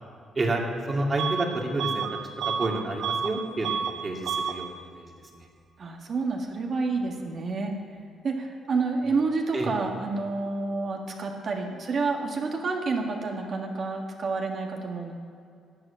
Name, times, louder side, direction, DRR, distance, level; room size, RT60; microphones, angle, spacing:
voice 1, 0.4-2.1 2.4-5.1 9.5-9.7, right 2 dB, 30° right, 0 dB, 2.5 m, -29 dB
Bus / Alarm, 1.2-1.5 1.8-3.4 3.6-4.0 4.2-4.6, right 7 dB, 75° right, 0.9 m, -30 dB
voice 2, 5.8-7.7 8.2-15.1, right 3 dB, 50° right, 1 dB, 1.8 m, -29 dB
12.5 x 8.1 x 8.6 m, 2.4 s
cardioid pair, 90°, 0 cm